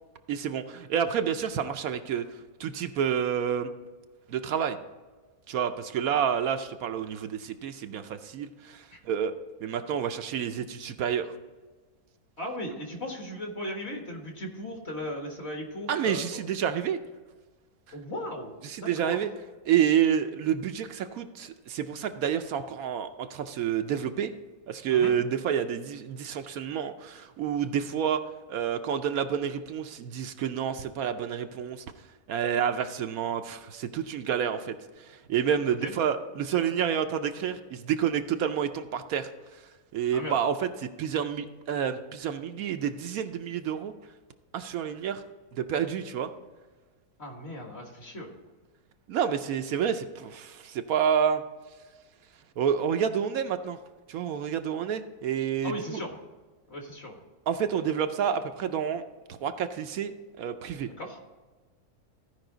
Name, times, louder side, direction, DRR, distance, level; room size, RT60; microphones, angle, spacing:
voice 1, 0.3-2.2 2.6-3.7 4.3-4.8 5.5-9.3 9.6-11.3 15.9-17.0 18.6-19.3 19.7-24.3 24.7-28.2 28.5-31.8 32.3-39.3 39.9-43.9 44.5-45.2 45.5-46.3 49.1-51.4 52.6-53.8 54.1-56.0 57.5-59.0 59.3-60.9, right 8 dB, 75° right, 8 dB, 1.0 m, -29 dB
voice 2, 12.4-16.4 17.9-19.2 24.9-25.1 35.8-35.9 40.1-40.4 47.2-48.3 55.6-56.1 56.7-57.2 60.8-61.2, left 1 dB, 45° left, 1 dB, 1.8 m, -37 dB
15.0 x 5.3 x 3.9 m, 1.3 s
omnidirectional pair, 1.6 m